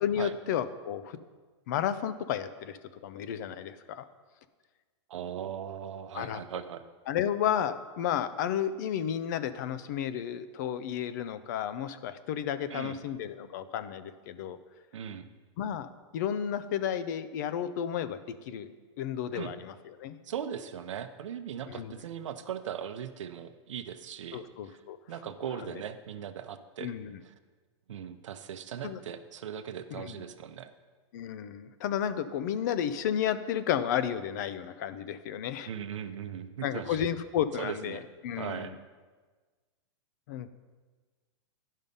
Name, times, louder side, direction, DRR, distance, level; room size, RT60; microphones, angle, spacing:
voice 1, 0.0-1.2 1.7-2.8 3.0-4.1 6.1-6.4 7.1-14.6 15.6-18.2 18.5-18.7 19.0-20.2 21.7-21.9 24.3-25.0 26.8-27.2 28.8-29.0 29.9-30.1 31.1-35.7 36.6-38.7 40.3-40.5, left 9 dB, 40° left, 13 dB, 0.4 m, -32 dB
voice 2, 5.1-6.8 12.7-13.0 14.9-15.3 19.3-19.5 20.2-24.8 25.1-26.9 27.2-27.3 27.9-30.7 35.7-37.1 37.6-38.0 38.4-38.7, right 9 dB, 85° right, 10 dB, 0.7 m, -39 dB
11.5 x 5.5 x 5.3 m, 1.4 s
supercardioid pair, 165°, 15 cm